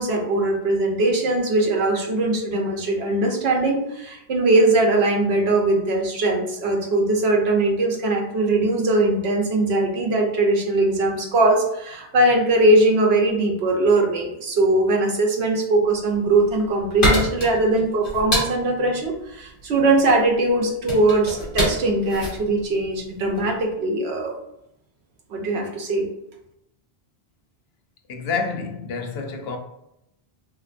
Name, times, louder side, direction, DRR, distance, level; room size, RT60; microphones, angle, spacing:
voice 1, 0.0-24.4 25.3-26.1, right 2 dB, 75° right, 1.0 m, -20 dB
sound 1, 16.1-23.6, left 1 dB, 55° left, 1.3 m, -27 dB
voice 2, 28.1-29.6, left 5 dB, 75° left, 0.8 m, -28 dB
3.3 x 2.8 x 2.5 m
omnidirectional pair, 1.1 m